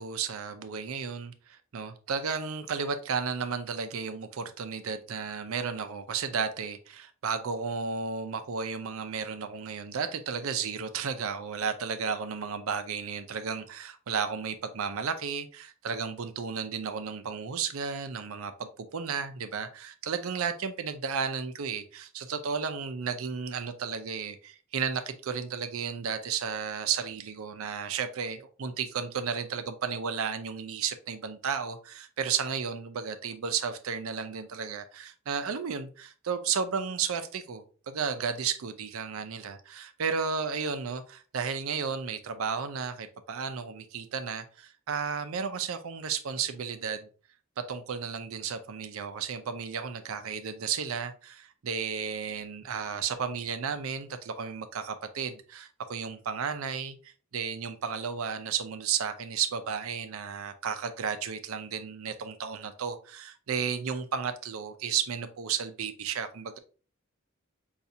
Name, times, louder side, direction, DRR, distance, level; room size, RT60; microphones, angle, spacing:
voice 1, 0.0-47.1 47.6-66.6, right 6 dB, 70° right, 0.5 m, -33 dB
5.3 x 2.4 x 2.7 m
head